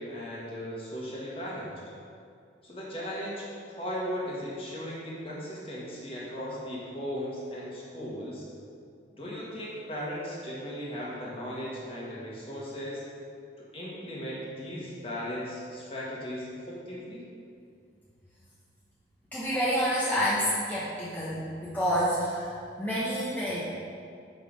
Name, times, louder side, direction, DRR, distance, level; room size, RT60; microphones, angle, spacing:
voice 1, 0.0-1.8 2.6-8.4 9.2-13.0 13.6-17.3, equal, 30° left, -5 dB, 1.6 m, -37 dB
voice 2, 19.3-22.5 22.8-23.6, equal, 10° left, -10 dB, 1.0 m, -28 dB
6.0 x 5.6 x 5.1 m, 2.3 s
head